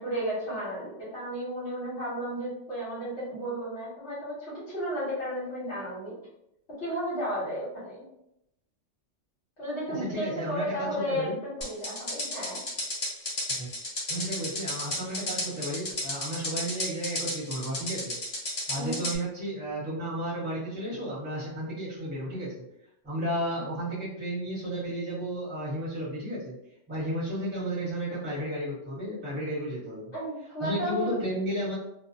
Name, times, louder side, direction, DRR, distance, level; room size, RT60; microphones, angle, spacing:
voice 1, 0.0-6.1 6.8-8.1 9.6-11.3 11.6-12.6 18.7-18.9 30.1-31.1, equal, 65° left, -8 dB, 1.3 m, -33 dB
voice 2, 9.9-11.3 13.5-13.7 14.1-18.2 18.7-22.5 23.0-26.5 26.9-30.1 30.6-31.8, right 1 dB, 10° right, -10 dB, 1.0 m, -33 dB
sound 1, 11.6-19.2, left 1 dB, 35° left, 0.6 m, -32 dB
2.3 x 2.2 x 2.6 m, 0.83 s
omnidirectional pair, 1.3 m